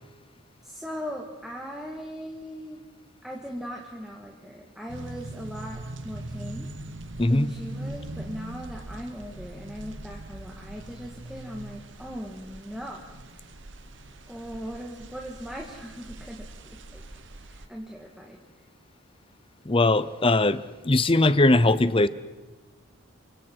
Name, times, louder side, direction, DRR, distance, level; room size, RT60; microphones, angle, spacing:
voice 1, 0.6-2.8 3.2-6.7 7.3-13.0 14.3-17.0 17.4-18.4, equal, ahead, -1 dB, 1.9 m, -39 dB
sound 1, 4.9-17.7, right 2 dB, 60° right, 1.1 m, -41 dB
voice 2, 19.7-22.1, left 2 dB, 25° left, 15 dB, 0.7 m, -20 dB
29.5 x 25.0 x 4.7 m, 1.2 s
head